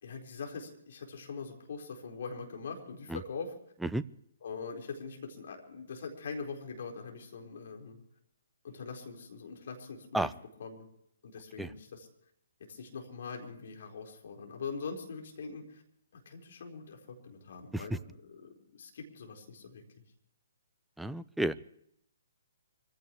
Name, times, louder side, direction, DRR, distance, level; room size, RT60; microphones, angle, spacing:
voice 1, 0.0-3.5 4.4-8.0 8.6-10.3 10.6-10.9 11.2-12.1 12.6-15.8 16.1-20.0, left 5 dB, 55° left, 2 dB, 4.4 m, -43 dB
voice 2, 21.0-21.6, right 1 dB, 5° right, 14 dB, 0.6 m, -31 dB
25.5 x 16.0 x 3.1 m, 0.72 s
figure-of-eight pair, 130°, 0 cm